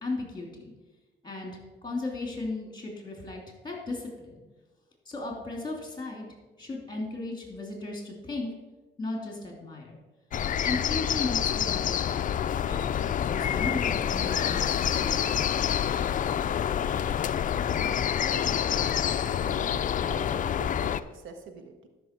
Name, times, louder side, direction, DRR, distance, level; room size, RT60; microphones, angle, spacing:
voice 1, 0.0-0.7 1.2-4.4 5.0-6.2 6.6-8.5 9.0-10.0 10.6-12.3 12.7-13.0 13.3-15.4, left 2 dB, 20° left, 0 dB, 3.0 m, -36 dB
sound 1, 10.3-21.0, left 9 dB, 40° left, 0.4 m, -27 dB
voice 2, 17.8-18.9 19.2-21.9, right 5 dB, 80° right, 6 dB, 1.2 m, -45 dB
12.5 x 5.9 x 4.6 m, 1.2 s
cardioid pair, 90°, 20 cm